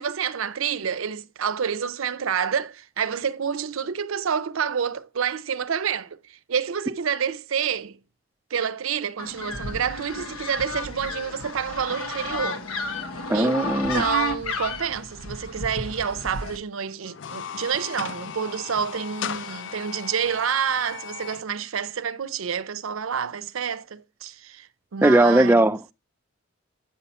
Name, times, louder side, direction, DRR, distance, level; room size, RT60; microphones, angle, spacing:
voice 1, 0.0-8.0 8.5-12.6 13.3-13.6 13.9-25.7, right 7 dB, 75° right, 0.5 m, -28 dB
sound 1, 9.2-16.6, left 2 dB, 90° left, 1.2 m, -32 dB
voice 2, 13.3-14.0 25.0-25.9, right 1 dB, 10° right, 0.4 m, -18 dB
sound 2, 17.0-21.4, left 7 dB, 60° left, 0.4 m, -36 dB
8.7 x 5.6 x 4.1 m
head